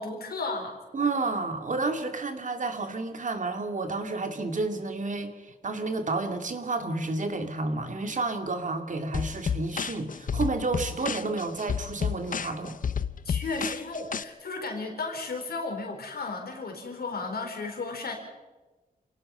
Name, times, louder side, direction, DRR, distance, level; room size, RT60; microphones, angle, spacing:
voice 1, 0.0-0.8 13.2-18.1, left 3 dB, 80° left, 3 dB, 4.5 m, -34 dB
voice 2, 0.9-12.8, right 3 dB, 55° right, 6 dB, 2.4 m, -30 dB
sound 1, 9.1-14.2, left 7 dB, 60° left, 0.7 m, -31 dB
28.0 x 18.5 x 5.6 m, 1.2 s
wide cardioid pair, 95°, 16 cm